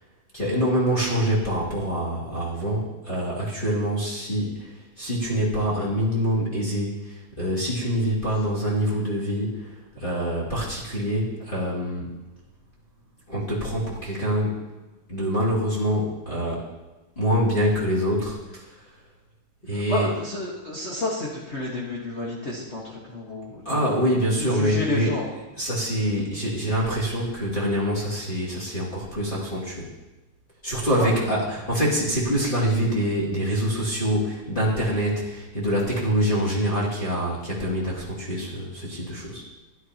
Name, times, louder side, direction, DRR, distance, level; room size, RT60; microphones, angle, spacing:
voice 1, 0.3-12.2 13.3-14.7 15.1-16.6 17.2-18.8 19.6-20.1 23.6-25.1 25.6-29.9 30.6-39.4, equal, 20° left, -6 dB, 1.8 m, -25 dB
voice 2, 19.7-23.9 24.4-25.3 31.0-31.1, left 2 dB, 80° left, -5 dB, 0.6 m, -30 dB
13.0 x 11.0 x 2.8 m, 1.1 s
omnidirectional pair, 3.5 m